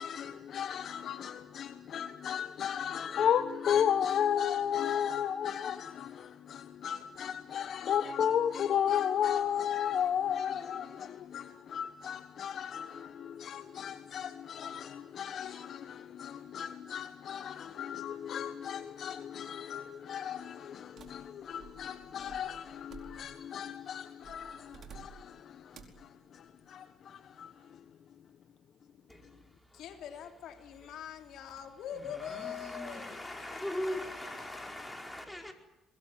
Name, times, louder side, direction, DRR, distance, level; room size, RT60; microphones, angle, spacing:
voice 1, 0.0-27.5, left 9 dB, 60° left, 1.2 m, -34 dB
sound 1, 21.0-23.5 24.2-25.3 25.7-26.1, right 6 dB, 55° right, 4.8 m, -53 dB
voice 2, 29.1-29.8 30.8-30.9 31.9-35.5, left 1 dB, 5° left, 4.8 m, -40 dB
voice 3, 29.7-34.9, left 9 dB, 75° left, 3.4 m, -44 dB
24.0 x 21.0 x 9.3 m
cardioid pair, 105°, 0 cm